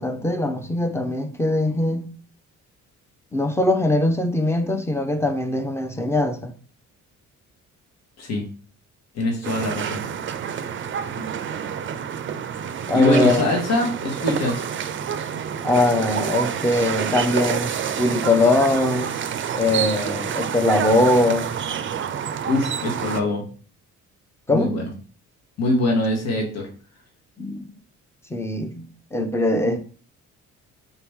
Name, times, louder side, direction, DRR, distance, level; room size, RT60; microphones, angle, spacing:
voice 1, 0.0-2.1 3.3-6.5 11.1-11.3 12.9-13.4 15.6-19.1 19.5-21.5 23.2-23.3 24.5-24.7 27.4-27.7 28.3-29.8, left 2 dB, 10° left, 0.6 m, -21 dB
voice 2, 9.1-10.0 12.9-14.6 22.4-23.4 24.5-24.9 25.6-26.7, left 2 dB, 60° left, 1.4 m, -23 dB
sound 1, 9.4-23.2, right 8 dB, 40° right, 0.4 m, -28 dB
4.1 x 2.9 x 3.6 m
cardioid pair, 90°, 30 cm